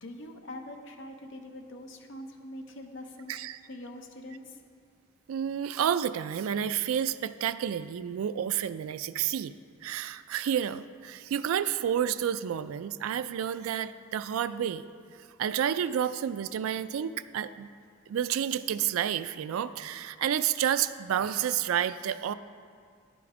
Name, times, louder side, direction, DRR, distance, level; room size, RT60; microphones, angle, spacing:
voice 1, 0.0-3.4 3.7-4.6, left 1 dB, 60° left, 4 dB, 0.7 m, -43 dB
voice 2, 3.3-3.6 5.3-9.5 9.8-14.9 15.1-17.7 18.1-22.3, right 9 dB, 85° right, 14 dB, 0.3 m, -30 dB
10.5 x 5.2 x 4.8 m, 2.1 s
head